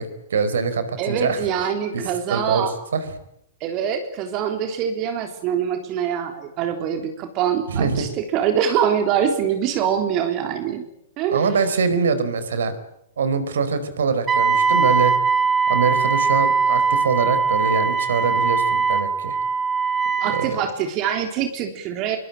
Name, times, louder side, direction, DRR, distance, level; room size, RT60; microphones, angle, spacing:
voice 1, 0.0-1.5 1.9-2.0 2.3-3.0 7.7-8.1 11.3-12.7 13.2-15.1 15.7-19.4 20.3-20.6, right 5 dB, 65° right, 12 dB, 4.6 m, -23 dB
voice 2, 1.0-2.7 3.6-10.8 11.2-11.4 20.2-22.2, right 8 dB, 35° right, 6 dB, 3.7 m, -24 dB
Wind instrument woodwind instrument, 14.3-20.5, right 5 dB, 20° right, 3.0 m, -20 dB
26.5 x 24.0 x 9.0 m, 0.76 s
figure-of-eight pair, 100°, 0 cm